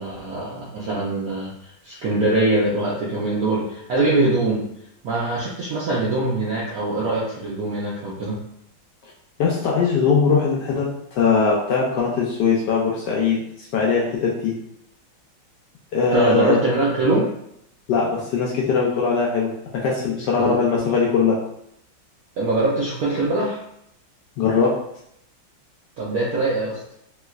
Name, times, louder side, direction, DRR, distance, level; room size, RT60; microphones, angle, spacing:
voice 1, 0.0-1.5 1.8-4.7 5.0-8.4 16.1-17.3 20.4-20.5 22.4-23.6 26.0-26.8, right 2 dB, 75° right, -6 dB, 0.8 m, -22 dB
voice 2, 9.4-14.5 15.9-16.6 17.9-19.5 19.8-21.4 24.4-24.7, left 5 dB, 75° left, -3 dB, 1.0 m, -20 dB
3.2 x 3.0 x 2.3 m, 0.75 s
omnidirectional pair, 2.2 m